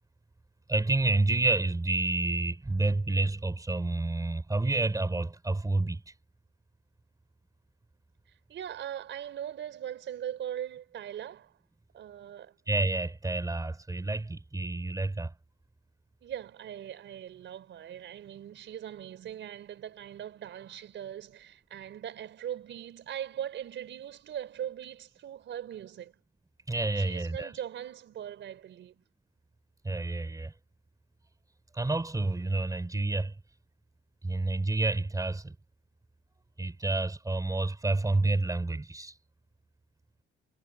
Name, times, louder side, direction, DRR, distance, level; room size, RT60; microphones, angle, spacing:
voice 1, 0.7-6.0 12.7-15.3 26.7-27.5 29.8-30.5 31.7-33.3 34.2-35.6 36.6-39.1, right 2 dB, 15° right, 5.0 m, -29 dB
voice 2, 8.3-11.6 11.9-12.6 16.2-26.2 27.0-29.0, right 10 dB, 70° right, 4.7 m, -40 dB
cardioid pair, 90°, 20 cm